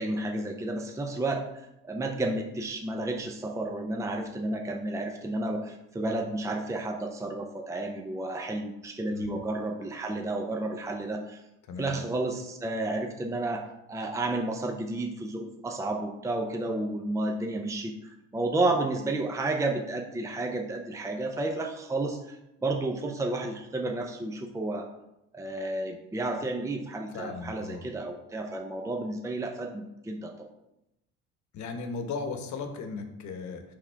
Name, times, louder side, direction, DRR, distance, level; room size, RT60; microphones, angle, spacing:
voice 1, 0.0-1.4 1.8-11.4 11.8-17.9 18.3-24.9 25.3-30.5, right 2 dB, 10° right, 2 dB, 0.7 m, -31 dB
voice 2, 27.1-27.9 31.5-33.7, left 4 dB, 60° left, 6 dB, 1.2 m, -36 dB
9.7 x 3.7 x 3.4 m, 0.88 s
supercardioid pair, 95°, 32 cm